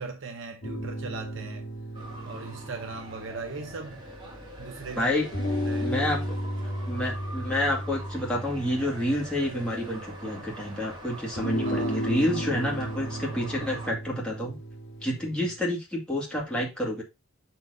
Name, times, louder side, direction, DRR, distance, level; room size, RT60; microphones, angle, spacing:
voice 1, 0.0-1.6 2.3-4.0 4.6-5.1 5.6-5.9 11.6-12.0, right 3 dB, 55° right, 0.9 m, -38 dB
sound 1, 0.6-4.5 5.3-10.4 11.4-15.6, equal, 50° left, 2.1 m, -34 dB
sound 2, 1.9-13.9, right 1 dB, 20° right, 1.9 m, -44 dB
voice 2, 5.0-5.3 5.8-6.2 6.9-14.6 15.0-17.0, left 1 dB, 5° left, 2.2 m, -29 dB
6.0 x 4.6 x 5.0 m
head